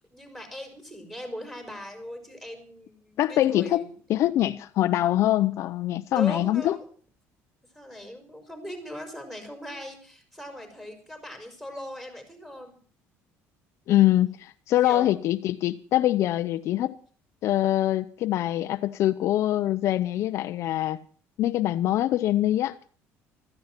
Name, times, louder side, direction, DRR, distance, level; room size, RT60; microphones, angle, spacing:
voice 1, 0.1-3.8 6.1-6.8 7.7-12.8 14.8-15.1, left 1 dB, 5° right, 4.8 m, -39 dB
voice 2, 3.2-3.8 4.1-6.8 13.9-16.9 17.4-21.0 21.4-22.7, left 13 dB, 55° left, 0.7 m, -24 dB
15.5 x 14.0 x 6.0 m
cardioid pair, 145°, 6 cm